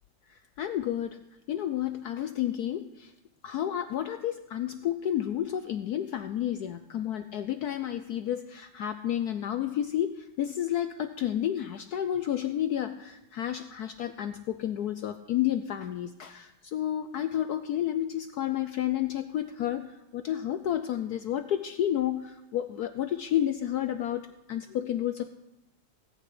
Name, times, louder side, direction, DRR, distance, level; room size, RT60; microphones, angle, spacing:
voice 1, 0.3-1.2 1.5-3.1 3.4-24.2 24.5-25.3, left 11 dB, 85° left, 9 dB, 0.8 m, -31 dB
18.0 x 6.0 x 8.5 m, 0.91 s
omnidirectional pair, 2.3 m